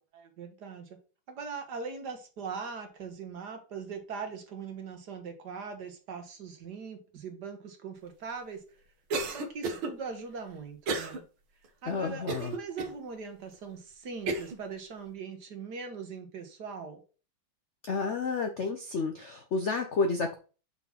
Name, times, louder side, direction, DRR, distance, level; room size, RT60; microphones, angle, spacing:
voice 1, 0.1-1.0 1.3-8.6 9.3-11.2 11.8-17.0, right 5 dB, 60° right, 5 dB, 1.7 m, -41 dB
Cough, 9.1-9.9 10.9-11.2 11.6-11.7 12.3-12.9 13.5-13.6 14.3-14.6, right 3 dB, 80° right, 2.0 m, -32 dB
voice 2, 11.9-12.5 17.8-20.3, left 4 dB, 65° left, 5 dB, 0.7 m, -30 dB
5.8 x 3.9 x 5.8 m, 0.35 s
omnidirectional pair, 2.2 m